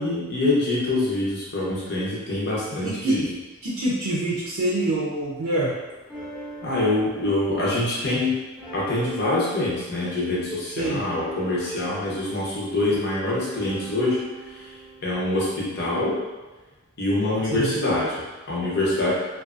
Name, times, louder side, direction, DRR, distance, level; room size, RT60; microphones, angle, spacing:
voice 1, 0.0-3.3 6.6-8.4 8.7-14.7 15.0-16.2 17.0-19.1, left 2 dB, 50° left, -6 dB, 0.7 m, -25 dB
voice 2, 2.8-3.2 3.6-5.7 10.8-11.0 17.5-17.7, right 1 dB, 80° right, -6 dB, 0.5 m, -25 dB
sound 1, 5.9-15.0, right 3 dB, 5° left, 0.7 m, -42 dB
2.6 x 2.3 x 2.4 m, 1.2 s
head